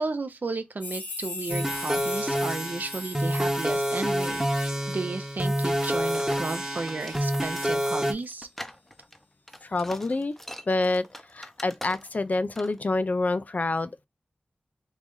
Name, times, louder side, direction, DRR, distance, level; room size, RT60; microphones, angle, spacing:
voice 1, 0.0-8.5, right 3 dB, 60° right, 0.6 m, -33 dB
sound 1, 0.8-7.7 8.1-8.2 9.5-9.6, left 2 dB, 85° left, 1.4 m, -41 dB
sound 2, 1.5-8.1, equal, 15° right, 0.9 m, -28 dB
sound 3, 5.8-12.3 12.6-12.8, equal, 5° left, 0.6 m, -43 dB
voice 2, 9.6-10.4 10.7-14.1, left 2 dB, 50° left, 0.4 m, -27 dB
3.1 x 2.6 x 3.7 m
cardioid pair, 50°, 3 cm